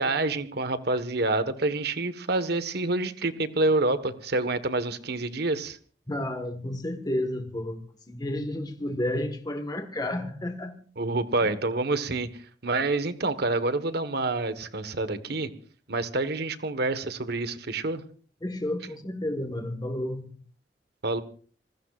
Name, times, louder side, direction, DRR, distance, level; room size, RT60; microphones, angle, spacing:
voice 1, 0.0-5.8 11.0-12.3 12.6-15.5 15.9-18.0 21.0-21.2, right 2 dB, 60° right, 1.4 m, -27 dB
voice 2, 6.1-7.8 8.1-10.8 11.4-11.5 18.4-20.4, left 1 dB, 20° left, 1.6 m, -31 dB
26.5 x 20.5 x 2.5 m
head